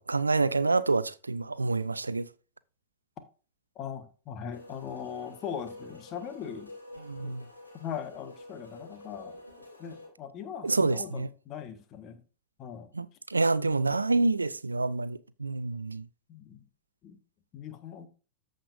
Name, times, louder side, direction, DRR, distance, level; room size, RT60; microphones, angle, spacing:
voice 1, 0.0-2.3 7.1-7.4 10.6-11.3 13.0-16.1, right 3 dB, 80° right, 0.4 m, -27 dB
voice 2, 3.7-6.7 7.2-7.4 7.7-9.4 9.8-12.2 12.6-12.9 13.6-14.0 16.3-16.6 17.0-17.2 17.5-18.1, left 8 dB, 35° left, 1.3 m, -40 dB
sound 1, 4.5-10.1, left 2 dB, 85° left, 2.9 m, -48 dB
14.5 x 5.1 x 2.5 m
figure-of-eight pair, 90°, 0 cm